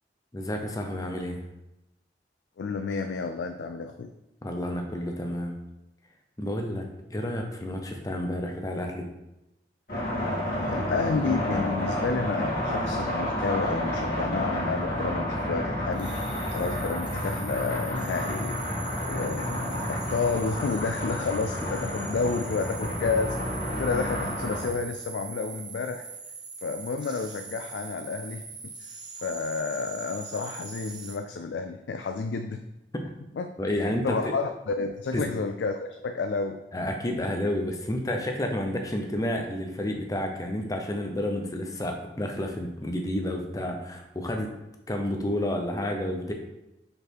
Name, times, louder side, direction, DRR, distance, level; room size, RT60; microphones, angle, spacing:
voice 1, 0.3-1.4 4.4-5.5 6.4-6.9 7.1-9.1 33.6-34.3 35.1-35.4 36.7-44.5 44.9-46.3, left 1 dB, 20° left, 3 dB, 0.7 m, -30 dB
voice 2, 2.6-4.1 10.6-16.1 16.5-18.6 19.1-26.1 26.6-28.7 29.2-32.6 33.3-36.6, left 4 dB, 80° left, 6 dB, 0.4 m, -31 dB
sound 1, 9.9-24.7, left 1 dB, 55° left, 2.2 m, -30 dB
sound 2, 15.9-31.2, right 5 dB, 25° right, 0.7 m, -42 dB
5.4 x 4.1 x 4.4 m, 0.92 s
head